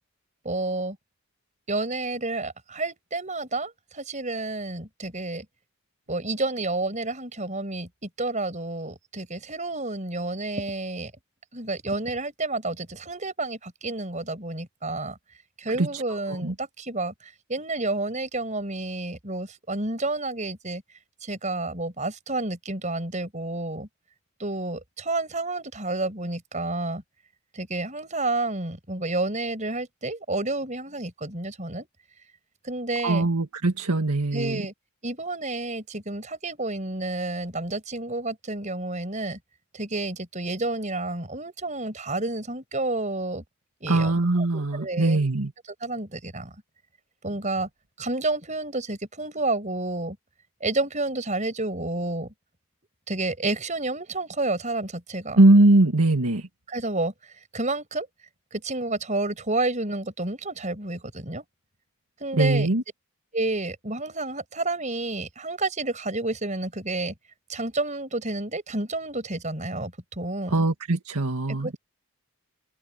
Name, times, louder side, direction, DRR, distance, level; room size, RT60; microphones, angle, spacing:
voice 1, 0.4-1.0 1.7-5.5 6.1-11.1 11.5-15.2 15.6-20.8 21.2-23.9 24.4-27.0 27.5-31.9 32.6-33.3 34.3-34.7 35.0-39.4 39.7-43.4 43.8-44.1 44.5-45.2 45.8-46.5 47.2-47.7 48.0-50.2 50.6-52.3 53.1-55.4 56.7-57.1 57.5-58.1 58.5-61.4 62.2-62.7 63.3-67.1 67.5-70.6 71.5-71.8, right 2 dB, 30° right, 5.9 m, -30 dB
voice 2, 33.0-34.6 43.9-45.5 55.4-56.5 62.3-62.8 70.5-71.8, right 2 dB, 85° right, 1.9 m, -21 dB
open air
head